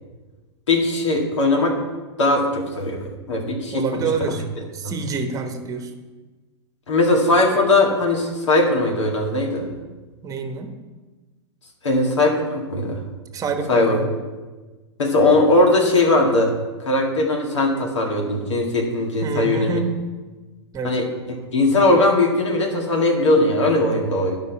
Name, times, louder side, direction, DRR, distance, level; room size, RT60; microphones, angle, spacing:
voice 1, 0.7-1.7 2.2-3.0 3.3-4.3 4.8-4.9 6.9-9.7 11.8-13.0 13.7-14.0 15.0-16.5 16.8-19.8 20.8-21.1 21.5-24.4, left 2 dB, 80° left, 0 dB, 2.2 m, -19 dB
voice 2, 3.7-4.4 4.7-5.9 10.2-10.7 13.3-14.1 19.2-20.0 20.7-21.0, right 4 dB, 25° right, 6 dB, 1.2 m, -27 dB
11.5 x 5.3 x 4.6 m, 1.3 s
hypercardioid pair, 105°, 15 cm